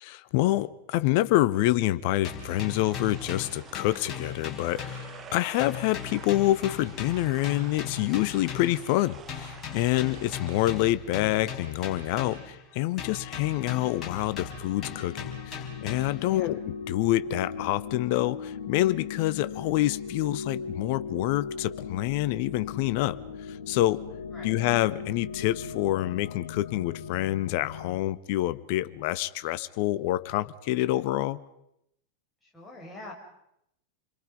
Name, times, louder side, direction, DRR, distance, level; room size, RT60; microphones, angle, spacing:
voice 1, 0.0-16.6 16.9-23.2 23.5-24.0 24.4-31.4, left 16 dB, 45° left, 0.8 m, -27 dB
sound 1, 2.2-5.3 5.6-8.9 9.3-12.6 13.0-16.3, left 6 dB, 25° left, 5.0 m, -39 dB
sound 2, 2.5-10.9, right 6 dB, 25° right, 1.6 m, -48 dB
sound 3, 13.0-28.0, left 6 dB, 65° left, 1.4 m, -39 dB
voice 2, 32.4-33.1, left 2 dB, 5° left, 6.4 m, -45 dB
29.0 x 23.0 x 5.4 m
figure-of-eight pair, 90°, 0 cm